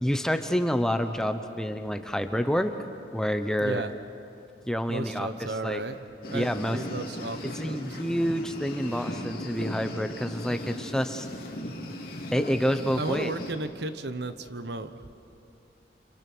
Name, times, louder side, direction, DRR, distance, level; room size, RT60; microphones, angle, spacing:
voice 1, 0.0-2.7 3.1-3.8 4.7-5.9 6.3-6.9 7.4-11.3 12.3-13.3, equal, 5° left, 7 dB, 0.9 m, -28 dB
voice 2, 3.6-3.9 4.9-6.0 6.3-7.8 13.0-15.1, right 2 dB, 65° right, 10 dB, 1.1 m, -34 dB
sound 1, 6.2-13.5, left 1 dB, 50° left, 3.3 m, -38 dB
29.5 x 27.0 x 6.2 m, 2.6 s
head